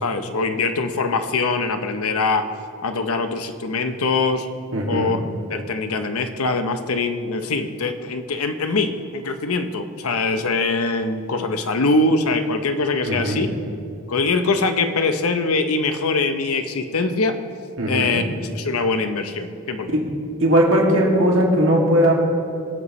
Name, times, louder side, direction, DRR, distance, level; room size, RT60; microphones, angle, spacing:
voice 1, 0.0-2.5 2.8-4.5 4.9-5.2 5.5-13.5 14.1-17.4 17.9-18.2 18.5-20.0, left 3 dB, 80° left, 8 dB, 0.8 m, -23 dB
voice 2, 4.7-5.1 13.1-13.4 17.8-18.2 19.9-20.0 20.4-22.1, equal, 65° right, -2 dB, 2.3 m, -18 dB
22.0 x 8.3 x 3.2 m, 2.5 s
head